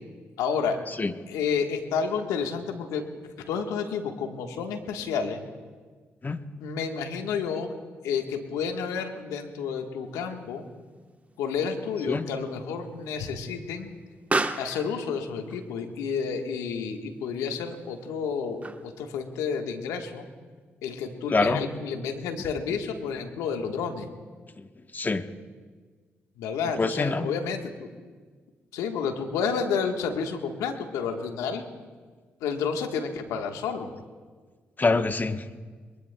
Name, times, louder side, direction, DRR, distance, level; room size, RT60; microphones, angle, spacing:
voice 1, 0.4-0.8 1.3-3.0 3.4-5.4 6.6-7.7 8.0-10.6 11.4-13.9 14.6-20.2 20.8-24.1 26.4-28.0 28.7-31.7 32.4-33.9, left 6 dB, 80° left, 4 dB, 1.3 m, -30 dB
Explosion, 10.1-19.1, right 2 dB, 25° right, 1.0 m, -37 dB
voice 2, 21.3-21.6 24.6-25.2 26.8-27.3 34.8-35.5, left 3 dB, 35° left, 9 dB, 1.0 m, -25 dB
22.5 x 20.5 x 2.2 m, 1.5 s
hypercardioid pair, 45°, 6 cm